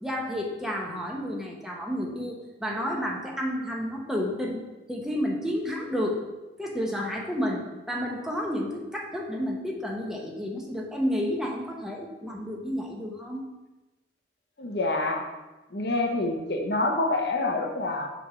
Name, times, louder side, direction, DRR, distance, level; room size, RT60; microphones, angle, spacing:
voice 1, 0.0-4.6 4.9-6.2 6.6-7.6 7.9-13.4, equal, 5° right, -2 dB, 0.9 m, -31 dB
voice 2, 14.6-15.2 15.7-18.1, left 2 dB, 65° left, 2 dB, 0.9 m, -27 dB
6.1 x 3.5 x 6.0 m, 1.1 s
head